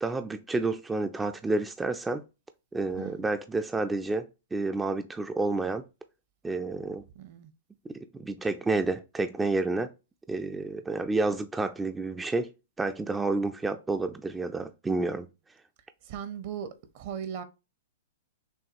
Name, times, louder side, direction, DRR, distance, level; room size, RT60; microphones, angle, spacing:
voice 1, 0.0-2.2 2.7-5.8 6.4-7.0 7.9-9.9 10.3-12.5 12.8-15.3, right 3 dB, 10° right, 0.4 m, -30 dB
voice 2, 7.1-7.5 16.1-16.7 16.9-17.4, right 8 dB, 55° right, 0.8 m, -37 dB
6.2 x 2.3 x 2.8 m
hypercardioid pair, 125°, 0 cm